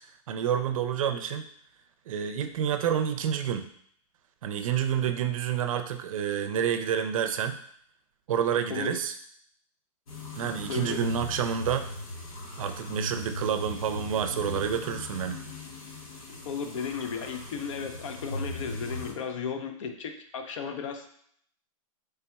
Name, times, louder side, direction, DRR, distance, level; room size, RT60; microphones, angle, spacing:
voice 1, 0.3-1.5 2.1-3.7 4.4-7.6 8.3-9.1 10.4-11.9 12.6-15.4, right 8 dB, 70° right, 8 dB, 0.5 m, -28 dB
voice 2, 8.7-9.0 10.7-11.0 14.5-14.6 16.4-21.1, left 6 dB, 60° left, 6 dB, 0.6 m, -34 dB
sound 1, 10.1-19.1, left 2 dB, 80° left, 1.0 m, -39 dB
4.0 x 3.4 x 2.3 m, 0.65 s
supercardioid pair, 165°, 18 cm